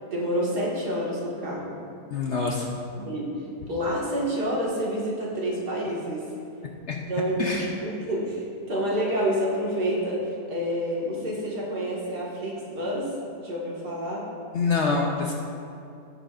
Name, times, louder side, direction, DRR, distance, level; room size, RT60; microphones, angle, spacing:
voice 1, 0.1-1.8 3.0-3.3 3.7-6.3 7.1-7.6 7.8-13.1 13.4-14.2, equal, 75° right, -5 dB, 2.5 m, -28 dB
voice 2, 2.1-2.8 6.9-7.0 7.4-7.7 14.5-15.3, left 4 dB, 55° left, 0 dB, 0.8 m, -25 dB
16.5 x 6.5 x 2.5 m, 2.5 s
omnidirectional pair, 1.8 m